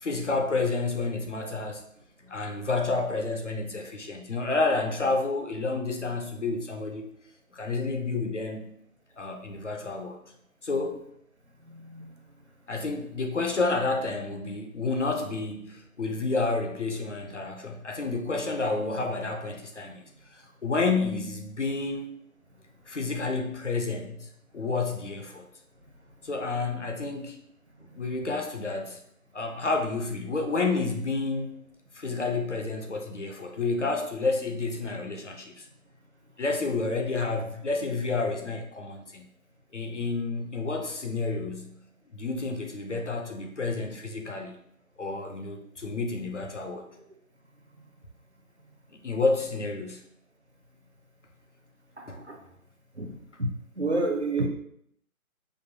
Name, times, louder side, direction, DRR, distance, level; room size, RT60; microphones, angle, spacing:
voice 1, 0.0-1.8 2.3-7.1 7.5-8.7 9.2-10.2 10.6-11.0 12.7-20.0 20.3-22.2 22.9-24.3 24.5-25.5 26.2-27.4 27.9-29.0 29.3-31.6 31.9-35.7 36.4-39.3 39.7-41.8 42.1-44.6 45.0-46.9 48.9-50.0 52.1-52.2, left 3 dB, 55° left, 3 dB, 0.6 m, -30 dB
voice 2, 53.8-54.5, right 2 dB, 50° right, 3 dB, 0.5 m, -27 dB
5.1 x 2.1 x 2.7 m, 0.70 s
figure-of-eight pair, 170°, 44 cm